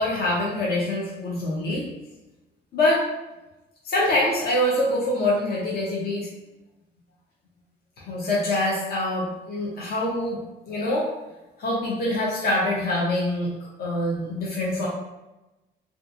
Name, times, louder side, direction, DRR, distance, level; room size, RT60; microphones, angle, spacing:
voice 1, 0.0-1.9 2.7-3.0 3.8-6.3 8.1-10.4 10.7-11.1 11.6-13.5 13.8-14.9, left 1 dB, 50° left, -5 dB, 0.7 m, -24 dB
2.5 x 2.4 x 2.5 m, 1.0 s
cardioid pair, 90°, 20 cm